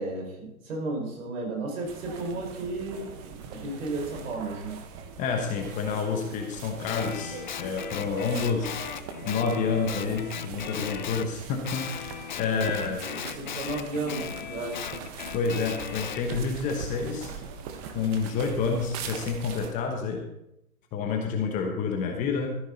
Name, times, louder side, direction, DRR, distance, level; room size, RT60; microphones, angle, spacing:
voice 1, 0.0-3.1 3.5-4.8 12.4-12.7 13.0-14.9, right 2 dB, 60° right, 0 dB, 5.3 m, -33 dB
sound 1, 1.9-19.7, right 6 dB, 25° right, 1.1 m, -41 dB
voice 2, 5.2-8.8 9.2-13.0 15.3-17.3 17.9-20.3 20.9-22.5, left 5 dB, 15° left, 2 dB, 1.0 m, -29 dB
Guitar, 6.8-11.3 11.6-16.2, left 8 dB, 35° left, 0.4 m, -37 dB
14.0 x 10.5 x 4.1 m, 0.86 s
hypercardioid pair, 140°, 44 cm